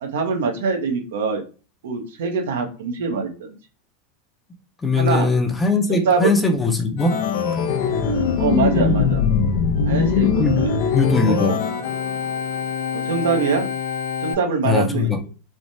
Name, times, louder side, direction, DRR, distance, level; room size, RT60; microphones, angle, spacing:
voice 1, 0.0-1.4 1.8-3.5 4.9-5.3 5.9-6.3 8.4-9.2 9.9-10.7 11.1-11.6 12.9-13.7 14.2-15.3, right 5 dB, 80° right, 3 dB, 0.7 m, -23 dB
voice 2, 4.8-7.1 10.4-10.6 10.9-11.5 14.6-15.2, left 3 dB, 15° left, 4 dB, 0.6 m, -20 dB
Organ, 7.0-14.3, left 6 dB, 60° left, 0.5 m, -22 dB
3.2 x 2.1 x 2.6 m, 0.35 s
hypercardioid pair, 105°, 0 cm